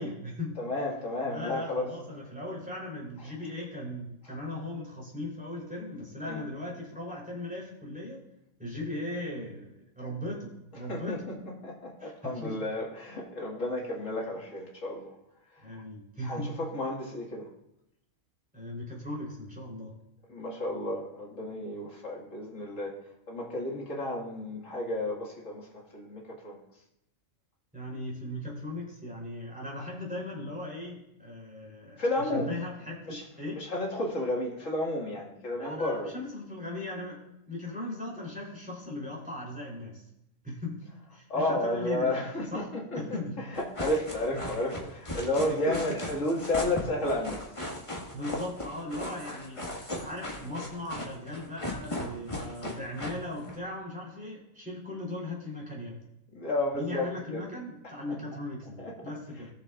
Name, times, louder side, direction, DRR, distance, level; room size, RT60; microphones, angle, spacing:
voice 1, 0.0-0.6 1.2-8.2 8.6-11.2 12.0-12.6 15.6-16.6 18.5-19.9 27.7-33.6 35.6-37.2 37.5-40.0 40.4-40.8 41.1-42.3 42.5-42.7 42.9-43.4 44.3-44.5 45.4-46.0 48.1-49.6 50.0-56.0 56.7-59.5, left 1 dB, 5° right, -4 dB, 3.4 m, -38 dB
voice 2, 0.6-1.9 6.3-6.4 10.9-15.1 15.7-15.8 16.2-17.5 20.3-23.0 23.3-26.6 32.0-32.5 33.1-33.2 33.6-36.1 41.3-43.2 43.5-47.5 49.6-49.7 56.3-57.5 58.1-58.2 58.8-59.1, left 1 dB, 70° left, -2 dB, 2.4 m, -32 dB
sound 1, 43.6-53.6, left 1 dB, 25° left, 1.7 m, -37 dB
17.5 x 6.9 x 2.4 m, 0.84 s
omnidirectional pair, 1.4 m